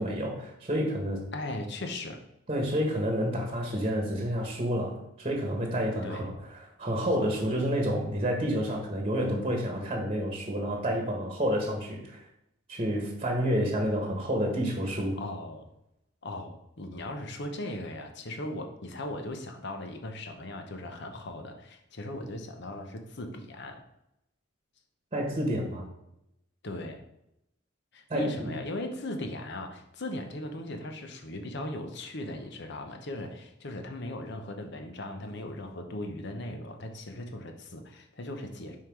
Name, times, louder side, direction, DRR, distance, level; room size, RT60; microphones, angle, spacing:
voice 1, 0.0-1.3 2.5-6.3 6.8-12.2 12.7-15.2 25.1-25.9 28.1-28.5, equal, 30° right, 1 dB, 1.2 m, -29 dB
voice 2, 1.3-2.2 6.0-6.3 15.1-15.7 16.2-23.8 26.6-27.0 27.9-38.8, left 1 dB, 60° left, 5 dB, 0.9 m, -38 dB
5.7 x 4.7 x 4.6 m, 0.84 s
head